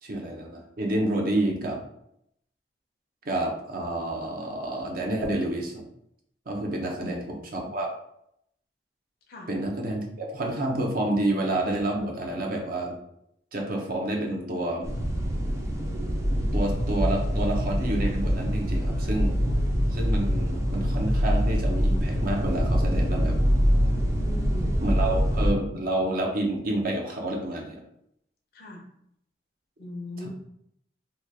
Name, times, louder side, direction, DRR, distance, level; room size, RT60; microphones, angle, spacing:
voice 1, 0.0-1.8 3.2-5.8 6.5-7.9 9.5-13.0 13.5-14.9 16.5-19.4 19.9-23.4 24.8-27.8 30.2-30.3, right 1 dB, 55° right, 1 dB, 0.7 m, -29 dB
voice 2, 6.8-7.4 9.3-9.5 24.2-24.7 28.5-28.8 29.8-30.3, left 1 dB, 60° left, 2 dB, 0.7 m, -39 dB
sound 1, 14.8-25.5, equal, 15° right, 0.5 m, -24 dB
3.0 x 2.3 x 3.5 m, 0.74 s
head